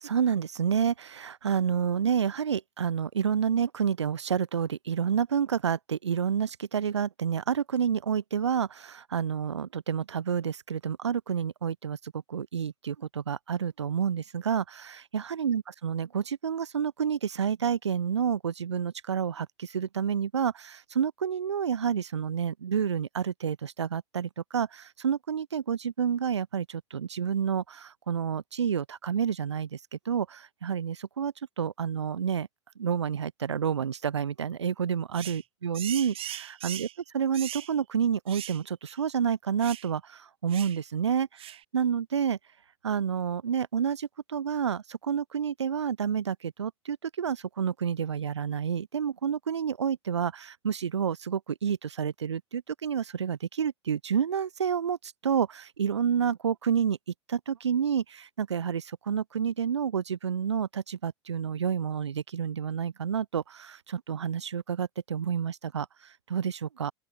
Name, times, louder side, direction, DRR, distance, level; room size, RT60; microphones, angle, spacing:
voice 1, 0.0-32.5 32.8-36.9 37.1-42.4 42.8-57.0 57.3-66.9, right 7 dB, 80° right, 3.8 m, -29 dB
sound 1, 35.1-35.4 35.7-37.0 37.3-37.7 38.3-38.6 38.9-39.0 39.6-39.9 40.5-40.8 41.4-41.6, right 12 dB, 40° right, 5.4 m, -39 dB
open air
figure-of-eight pair, 75°, 15 cm